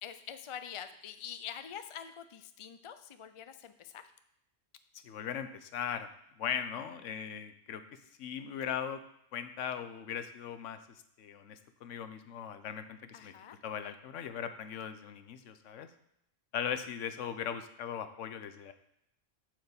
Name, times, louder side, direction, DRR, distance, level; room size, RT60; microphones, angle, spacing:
voice 1, 0.0-4.0 13.1-13.6, left 9 dB, 45° left, 10 dB, 0.4 m, -45 dB
voice 2, 5.0-6.1 6.4-7.8 8.2-9.0 9.3-10.8 11.2-13.3 13.6-15.9 16.5-18.7, left 8 dB, 85° left, 10 dB, 1.0 m, -39 dB
7.5 x 4.8 x 6.9 m, 0.77 s
omnidirectional pair, 1.3 m